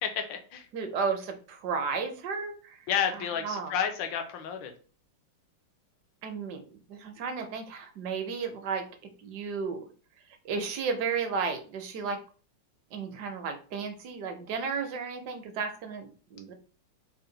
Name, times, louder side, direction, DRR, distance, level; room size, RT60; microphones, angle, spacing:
voice 1, 0.0-0.6 2.9-4.7, left 8 dB, 80° left, 5 dB, 1.4 m, -31 dB
voice 2, 0.7-3.8 6.2-8.9 9.2-9.8 10.4-12.2 12.9-16.5, right 5 dB, 70° right, 5 dB, 1.1 m, -33 dB
4.3 x 2.2 x 3.8 m, 0.39 s
omnidirectional pair, 2.0 m